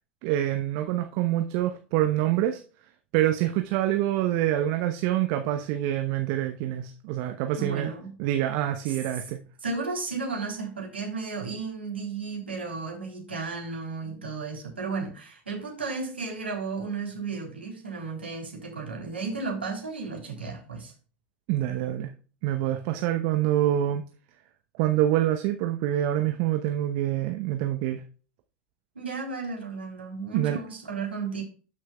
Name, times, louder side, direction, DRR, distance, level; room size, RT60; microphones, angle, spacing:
voice 1, 0.2-2.6 3.1-7.9 8.2-9.4 21.5-22.1 22.4-24.0 24.8-28.0 30.3-30.6, right 13 dB, 55° right, 6 dB, 0.9 m, -26 dB
voice 2, 7.6-8.1 8.9-9.0 9.6-20.9 28.9-31.4, right 4 dB, 85° right, 0 dB, 3.3 m, -34 dB
13.0 x 6.2 x 2.3 m, 0.38 s
figure-of-eight pair, 80°, 6 cm